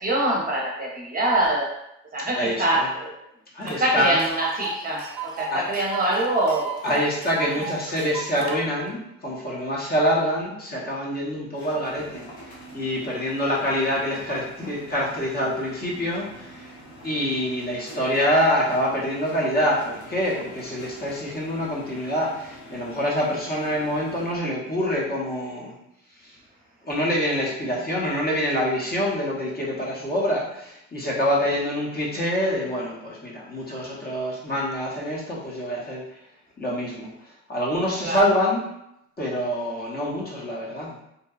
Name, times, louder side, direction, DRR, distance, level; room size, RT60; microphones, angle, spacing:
voice 1, 0.0-1.7 2.1-3.1 3.6-6.8 38.0-38.2, right 1 dB, 30° right, -3 dB, 0.6 m, -24 dB
voice 2, 2.3-2.9 3.5-4.2 5.5-5.6 6.8-12.3 12.7-16.8 17.0-25.7 26.2-26.4 26.8-36.0 36.6-38.6 39.2-41.0, equal, 30° left, -4 dB, 0.7 m, -26 dB
Tick, 3.7-3.8 4.0-8.5, right 4 dB, 90° right, 0.5 m, -34 dB
sound 1, 11.5-24.3, equal, 75° left, 0.8 m, -45 dB
2.7 x 2.2 x 2.3 m, 0.81 s
cardioid pair, 90°, 30 cm